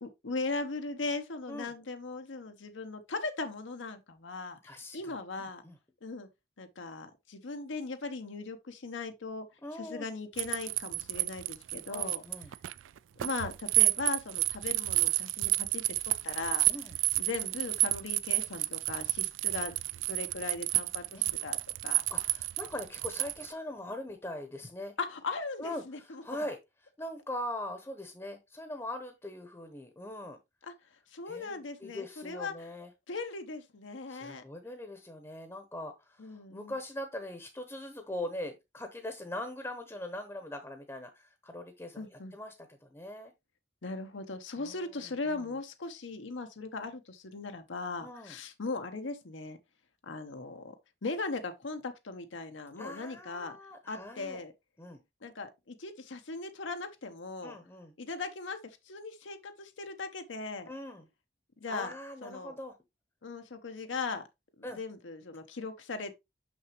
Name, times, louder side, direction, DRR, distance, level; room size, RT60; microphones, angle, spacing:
voice 1, 0.0-4.6 4.9-5.6 6.0-6.3 6.6-9.5 9.8-12.2 13.2-15.9 16.2-16.6 17.2-21.6 21.8-22.0 25.0-26.2 30.6-30.7 31.1-32.7 33.1-34.4 36.2-36.7 42.0-42.3 43.8-49.6 50.0-50.8 51.0-53.6 53.9-54.5 55.2-57.6 58.0-60.7 61.6-61.9 62.2-62.5 63.2-64.2 64.6-66.1, left 3 dB, 85° left, 0.9 m, -38 dB
voice 2, 4.6-5.8 9.6-10.1 11.9-12.5 16.7-17.0 21.1-21.3 22.1-24.9 25.6-26.6 27.0-30.4 31.3-32.9 34.1-43.3 44.6-45.6 48.0-48.4 52.8-54.4 54.8-55.0 57.4-57.9 60.7-61.1 61.7-62.8 64.6-64.8, left 1 dB, 15° left, 0.8 m, -41 dB
sound 1, 10.4-23.5, right 19 dB, 85° right, 0.4 m, -30 dB
6.3 x 5.9 x 2.9 m
head